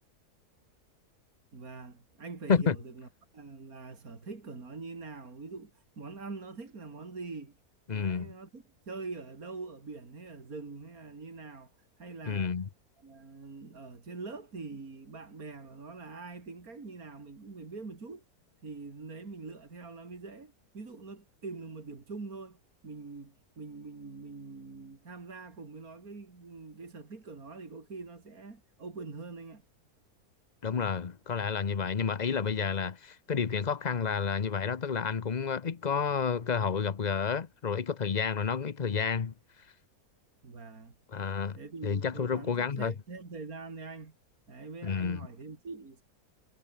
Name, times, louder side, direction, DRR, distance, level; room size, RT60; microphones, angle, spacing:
voice 1, 1.5-3.1 3.3-7.5 7.9-11.7 12.0-12.6 13.0-18.2 18.6-29.6 40.4-41.0 41.5-44.2 44.5-46.0, right 4 dB, 65° right, 3.7 m, -44 dB
voice 2, 7.9-8.3 12.3-12.7 30.6-39.3 41.1-42.9 44.8-45.2, left 6 dB, 35° left, 0.8 m, -30 dB
omnidirectional pair, 1.6 m